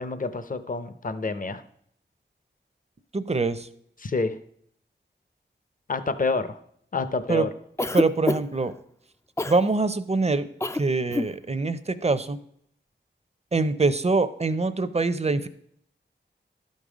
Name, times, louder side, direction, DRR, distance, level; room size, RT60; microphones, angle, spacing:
voice 1, 0.0-1.6 4.0-4.4 5.9-6.6 6.9-7.5, left 3 dB, 45° left, 12 dB, 0.7 m, -28 dB
voice 2, 3.1-3.7 7.3-7.5 7.9-8.8 9.5-10.5 10.7-12.4 13.5-15.5, right 3 dB, 35° right, 13 dB, 0.6 m, -24 dB
Cough, 7.8-8.7 9.4-9.6 10.6-10.8 11.1-11.3, left 2 dB, 15° left, 0.4 m, -26 dB
12.0 x 5.4 x 5.0 m, 0.68 s
wide cardioid pair, 55°, 19 cm